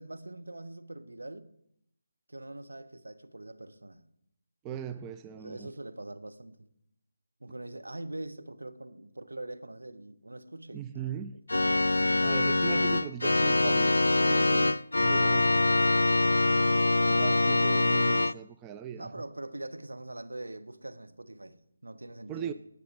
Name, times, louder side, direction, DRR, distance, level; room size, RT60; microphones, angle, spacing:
voice 1, 0.0-1.5 2.3-4.0 5.4-6.7 7.4-11.2 11.5-12.5 17.1-17.3 18.9-21.6 21.8-22.5, right 2 dB, 75° right, 1.2 m, -43 dB
voice 2, 4.6-5.7 10.7-11.4 12.2-13.9 14.2-15.6 17.1-19.1 22.3-22.5, right 9 dB, 15° right, 0.3 m, -39 dB
Organ, 11.5-18.3, left 2 dB, 70° left, 0.4 m, -24 dB
18.0 x 6.8 x 3.5 m
figure-of-eight pair, 155°, 0 cm